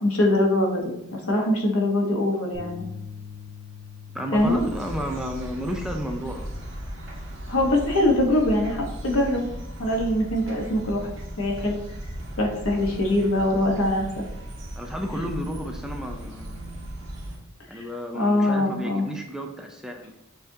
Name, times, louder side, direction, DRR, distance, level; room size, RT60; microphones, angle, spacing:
voice 1, 0.0-2.9 4.3-4.6 7.5-9.5 9.8-11.1 11.4-11.8 12.4-14.1 17.7-17.9 18.1-19.1, left 1 dB, 85° left, 0 dB, 1.0 m, -23 dB
sound 1, 2.5-8.8, left 6 dB, 40° right, 1.5 m, -44 dB
voice 2, 4.1-6.5 14.8-16.8 17.7-20.2, equal, 5° right, 3 dB, 0.3 m, -32 dB
sound 2, 4.3-17.4, equal, 60° right, 1.1 m, -37 dB
6.6 x 2.4 x 2.7 m, 0.87 s
head